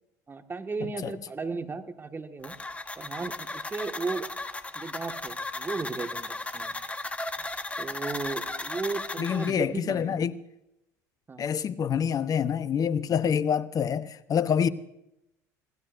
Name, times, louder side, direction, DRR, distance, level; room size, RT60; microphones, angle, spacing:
voice 1, 0.3-2.6 3.0-4.3 4.7-6.7 7.8-10.3 11.3-11.5, right 4 dB, 25° right, 1.7 m, -35 dB
sound 1, 2.4-9.5, left 2 dB, 15° left, 1.3 m, -36 dB
voice 2, 9.2-10.3 11.4-14.7, left 7 dB, 40° left, 0.9 m, -26 dB
26.5 x 16.5 x 2.6 m
hypercardioid pair, 75°, 9 cm